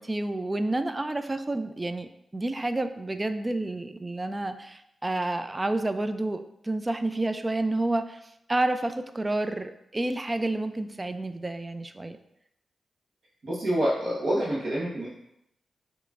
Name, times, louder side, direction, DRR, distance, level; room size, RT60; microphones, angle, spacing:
voice 1, 0.0-8.2 8.5-12.2, right 2 dB, 25° right, 10 dB, 0.3 m, -29 dB
voice 2, 13.4-15.1, right 1 dB, 65° right, -9 dB, 1.4 m, -27 dB
5.5 x 3.0 x 2.5 m, 0.80 s
cardioid pair, 55°, 0 cm